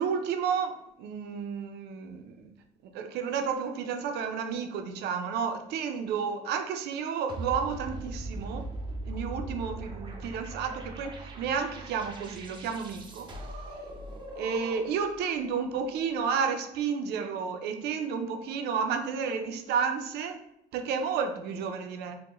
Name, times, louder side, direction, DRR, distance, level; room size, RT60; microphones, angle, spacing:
voice 1, 0.0-2.5 2.9-8.6 9.0-13.3 14.4-20.4 20.7-22.2, right 6 dB, 75° right, 6 dB, 0.5 m, -31 dB
sound 1, 7.3-15.1, right 2 dB, 30° right, 0.6 m, -40 dB
4.4 x 2.1 x 3.0 m, 0.86 s
cardioid pair, 110°, 17 cm